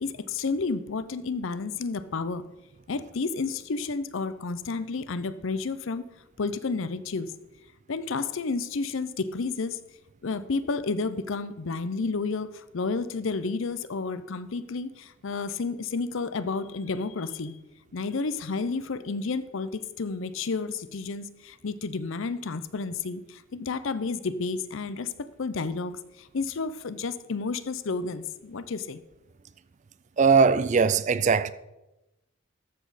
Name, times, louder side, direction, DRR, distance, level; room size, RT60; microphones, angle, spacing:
voice 1, 0.0-2.4 2.9-6.1 6.4-7.3 7.9-9.8 10.2-17.6 17.9-25.1 25.4-29.0, left 4 dB, 65° left, 0.6 m, -31 dB
voice 2, 30.2-31.5, right 5 dB, 35° right, 0.3 m, -20 dB
13.0 x 7.2 x 4.1 m
head